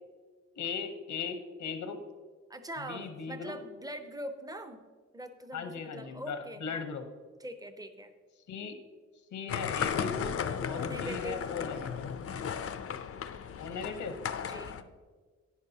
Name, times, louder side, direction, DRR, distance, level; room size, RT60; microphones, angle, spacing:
voice 1, 0.6-2.0 2.8-3.6 5.5-7.0 8.5-8.8 9.3-10.4 10.7-12.1 13.6-14.2, left 5 dB, 85° left, 7 dB, 1.0 m, -38 dB
voice 2, 2.5-4.8 5.1-6.8 7.4-8.1 10.7-11.4 14.5-14.8, right 1 dB, 10° right, 8 dB, 0.7 m, -42 dB
sound 1, 9.5-14.8, left 7 dB, 50° left, 0.5 m, -35 dB
11.0 x 9.6 x 2.8 m, 1.5 s
cardioid pair, 105°, 29 cm